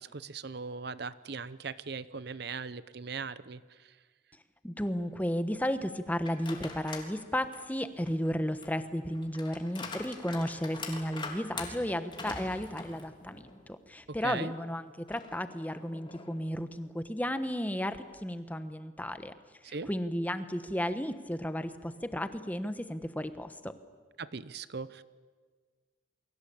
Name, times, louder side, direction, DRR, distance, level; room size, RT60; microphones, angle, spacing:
voice 1, 0.0-4.0 14.2-14.5 19.6-19.9 24.2-25.0, right 5 dB, 55° right, 16 dB, 0.7 m, -39 dB
voice 2, 4.6-19.3 19.9-23.7, equal, 10° left, 10 dB, 1.2 m, -34 dB
sound 1, 6.2-7.1 7.5-13.6 14.0-14.1 15.1-16.6, left 3 dB, 25° left, 3.4 m, -44 dB
29.0 x 22.5 x 8.6 m, 1.5 s
head